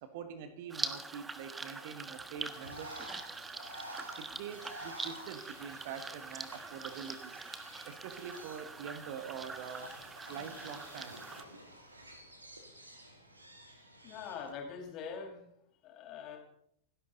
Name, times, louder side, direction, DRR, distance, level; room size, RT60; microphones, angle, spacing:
voice 1, 0.0-3.1 4.2-7.4 7.8-10.0 10.3-11.4, right 7 dB, 50° right, 10 dB, 1.7 m, -45 dB
sound 1, 0.7-11.4, right 3 dB, 15° right, 1.4 m, -44 dB
Bird, 2.5-14.5, right 1 dB, 80° right, 2.8 m, -51 dB
voice 2, 14.0-15.4 15.8-16.4, left 6 dB, 35° left, 1 dB, 5.4 m, -43 dB
29.5 x 11.0 x 4.0 m, 0.71 s
figure-of-eight pair, 90°, 0 cm